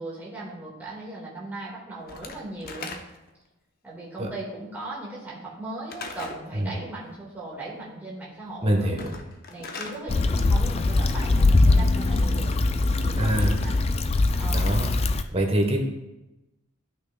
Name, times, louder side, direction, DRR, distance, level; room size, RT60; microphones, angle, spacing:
voice 1, 0.0-2.9 3.8-9.0 9.5-12.5 13.0-13.8 14.4-14.7, right 2 dB, 10° right, -7 dB, 1.7 m, -38 dB
Slam / Wood, 2.1-3.4 5.9-6.5 8.9-10.0, left 3 dB, 45° left, 0.7 m, -38 dB
voice 2, 8.6-9.1 13.2-13.5 14.5-14.9 15.3-15.8, right 1 dB, 30° right, 2 dB, 1.1 m, -24 dB
Stream / Traffic noise roadway noise / Trickle dribble, 10.1-15.2, left 2 dB, 30° left, 0.3 m, -22 dB
12.0 x 6.0 x 2.3 m, 1.0 s
head